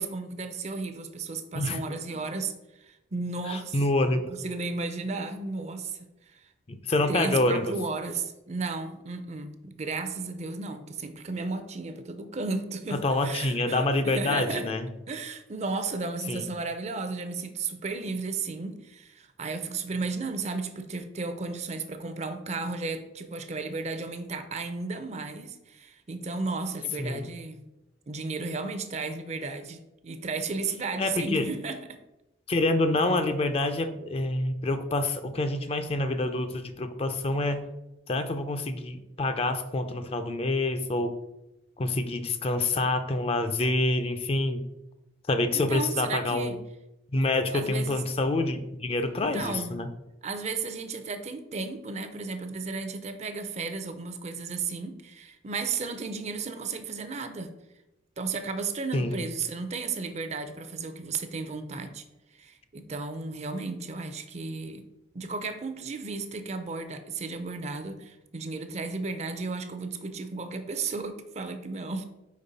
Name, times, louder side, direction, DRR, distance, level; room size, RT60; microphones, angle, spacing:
voice 1, 0.0-3.8 4.4-6.0 6.3-6.4 7.1-13.0 13.2-14.7 15.1-27.6 28.1-32.0 45.5-46.5 47.5-48.0 49.2-49.7 50.2-57.5 58.2-62.0 62.3-64.8 65.1-72.0, right 4 dB, 35° right, 9 dB, 0.5 m, -34 dB
voice 2, 3.5-4.3 6.7-7.7 12.9-14.9 16.3-16.4 27.0-27.2 31.0-31.5 32.5-37.6 38.1-41.1 41.8-44.6 45.3-46.6 47.1-49.9 58.9-59.2, left 2 dB, 30° left, 8 dB, 0.4 m, -27 dB
5.2 x 4.5 x 4.0 m, 0.94 s
head